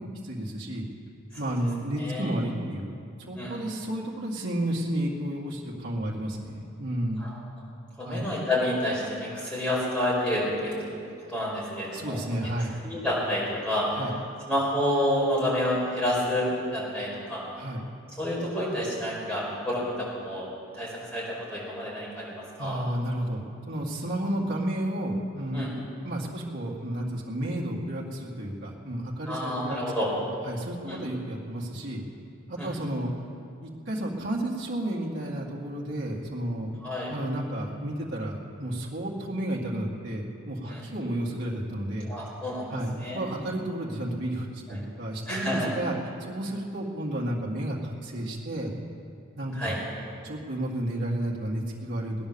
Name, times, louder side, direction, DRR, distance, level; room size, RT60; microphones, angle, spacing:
voice 1, 0.2-0.9 1.4-2.9 3.3-7.2 8.0-8.2 11.9-12.7 13.9-14.1 17.6-17.8 22.6-25.6 26.0-29.8 30.4-32.0 32.5-33.1 33.6-36.7 37.1-42.1 42.7-45.9 46.2-48.7 49.4-49.8 50.2-52.1, right 1 dB, 60° right, -4 dB, 2.2 m, -32 dB
voice 2, 2.0-2.3 3.3-3.6 7.2-7.4 8.0-10.9 11.3-12.5 12.8-14.0 14.5-17.4 18.2-22.8 25.5-25.7 29.3-30.1 30.8-31.0 32.6-32.7 36.8-37.1 40.6-40.8 42.0-43.2 44.7-44.8 45.3-45.7 49.5-49.8, left 1 dB, 5° left, -7 dB, 5.2 m, -29 dB
18.5 x 10.5 x 7.1 m, 2.4 s
head